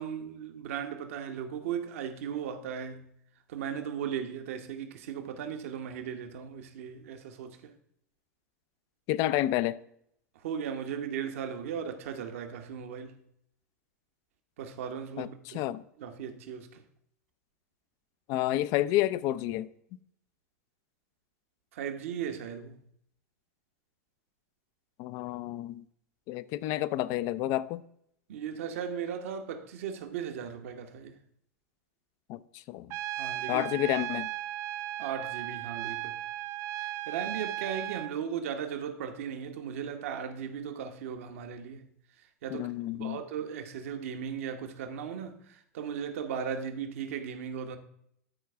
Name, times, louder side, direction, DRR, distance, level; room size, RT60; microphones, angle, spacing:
voice 1, 0.0-3.1 3.5-7.7 10.3-13.2 14.6-16.8 21.7-22.8 28.3-31.2 33.2-33.7 35.0-36.2 36.8-41.9 42.2-42.7 43.0-47.8, right 8 dB, 60° right, 1.0 m, -37 dB
voice 2, 9.1-9.8 15.2-15.8 18.3-20.0 25.0-25.8 26.3-27.8 32.3-32.9 33.5-34.3 42.5-43.2, left 14 dB, 45° left, 0.4 m, -30 dB
Trumpet, 32.9-38.1, right 14 dB, 35° right, 0.3 m, -36 dB
13.0 x 4.7 x 3.4 m
figure-of-eight pair, 90°, 8 cm